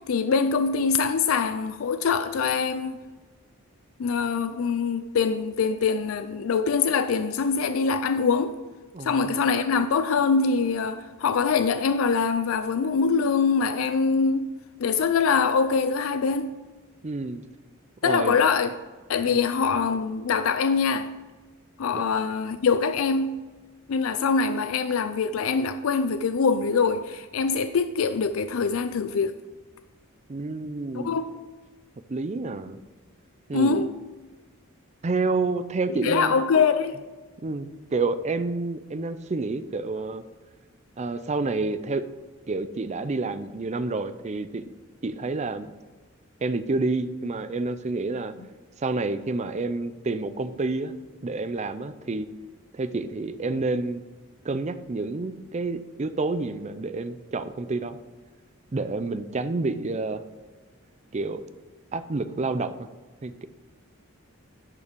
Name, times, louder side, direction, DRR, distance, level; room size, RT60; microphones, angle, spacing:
voice 1, 0.0-3.0 4.0-8.6 9.0-14.5 14.8-16.5 18.0-18.7 19.1-21.1 21.8-23.4 23.9-29.3 30.9-31.4 33.5-34.0 36.0-37.0, left 5 dB, 75° left, 0.4 m, -24 dB
voice 2, 8.9-9.4 17.0-17.4 18.0-18.4 19.3-19.4 21.9-22.0 30.3-31.2 32.1-32.8 33.5-33.8 35.0-36.3 37.4-40.2 41.0-42.1 42.5-44.7 45.0-45.7 46.4-48.3 48.8-50.9 51.2-52.3 52.7-54.0 54.4-58.0 58.7-60.2 61.1-61.4 61.9-62.7 63.2-63.5, right 3 dB, 35° right, 0.5 m, -29 dB
11.0 x 5.6 x 5.1 m
head